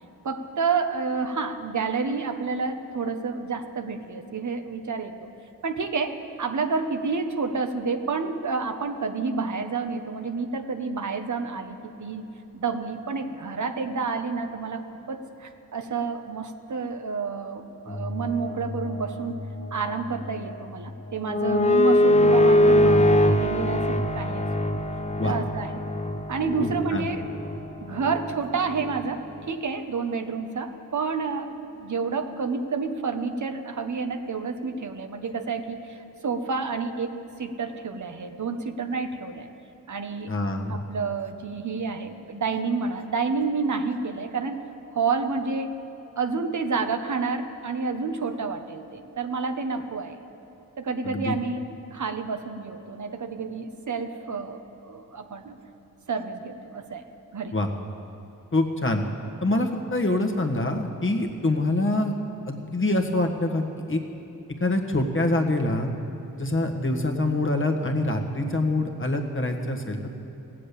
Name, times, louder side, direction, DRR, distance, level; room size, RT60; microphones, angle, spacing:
voice 1, 0.2-5.3 5.6-12.2 12.5-14.8 15.1-19.4 19.7-24.7 25.2-25.8 26.3-27.2 27.8-39.5 39.9-40.3 40.7-44.6 44.9-45.7 46.2-50.2 50.8-51.6 51.9-55.6 56.1-57.1 57.3-57.6, right 4 dB, 60° right, 7 dB, 1.0 m, -29 dB
sound 1, 17.9-20.6 20.9-29.0, left 1 dB, 20° left, 0.8 m, -23 dB
voice 2, 26.6-27.1 40.3-40.8 51.0-51.4 57.5-57.7 58.5-59.0 59.4-62.1 62.5-64.0 64.6-65.9 66.4-70.1, left 2 dB, 35° left, 3 dB, 1.6 m, -25 dB
16.5 x 7.6 x 8.5 m, 2.9 s
cardioid pair, 65°, 34 cm